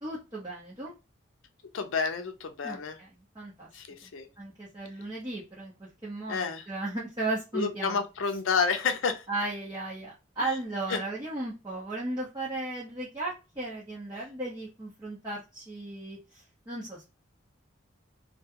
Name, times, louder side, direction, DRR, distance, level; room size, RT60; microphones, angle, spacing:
voice 1, 0.0-0.9 2.6-3.1 3.3-3.7 4.4-8.0 9.3-17.0, right 2 dB, 20° right, 0.7 m, -36 dB
voice 2, 1.7-3.0 3.7-4.3 6.3-6.7 7.5-9.2 10.4-10.5 10.9-11.0, left 5 dB, 80° left, 0.5 m, -29 dB
2.3 x 2.2 x 2.8 m
head